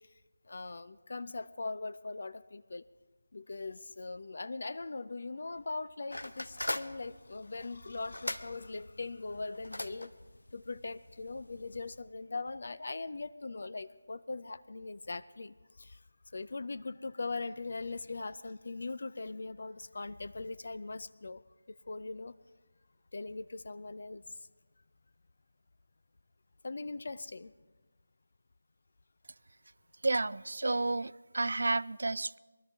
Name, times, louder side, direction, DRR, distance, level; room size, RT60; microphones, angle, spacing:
voice 1, 0.5-2.8 3.3-10.1 10.5-16.0 16.3-21.4 21.7-22.3 23.1-24.5 26.6-27.5, left 3 dB, 50° left, 0.4 m, -40 dB
sound 1, 6.1-12.0, left 1 dB, 70° left, 0.7 m, -42 dB
voice 2, 30.0-32.4, right 2 dB, 55° right, 0.3 m, -31 dB
22.0 x 13.0 x 3.5 m
figure-of-eight pair, 160°, 0 cm